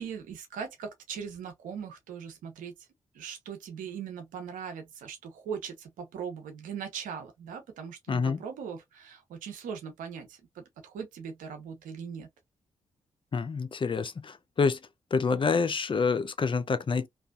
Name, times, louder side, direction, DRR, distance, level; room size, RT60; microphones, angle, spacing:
voice 1, 0.0-2.7 3.1-12.3, right 7 dB, 85° right, 0.8 m, -40 dB
voice 2, 8.1-8.4 13.3-14.8 15.1-17.1, left 5 dB, 40° left, 0.5 m, -27 dB
2.5 x 2.3 x 2.3 m
supercardioid pair, 45°, 13 cm